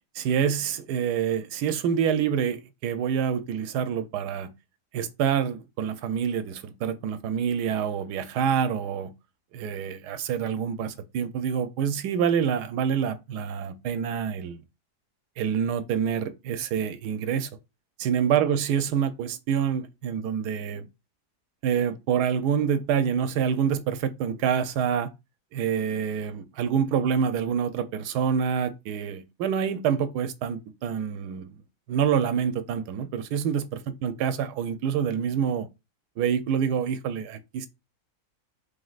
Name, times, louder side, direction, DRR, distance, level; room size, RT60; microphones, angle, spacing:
voice 1, 0.2-4.5 4.9-9.1 9.5-14.6 15.4-17.5 18.0-20.9 21.6-25.1 25.5-31.5 31.9-35.7 36.2-37.7, right 8 dB, 85° right, 1.2 m, -27 dB
5.3 x 3.3 x 2.4 m
omnidirectional pair, 1.7 m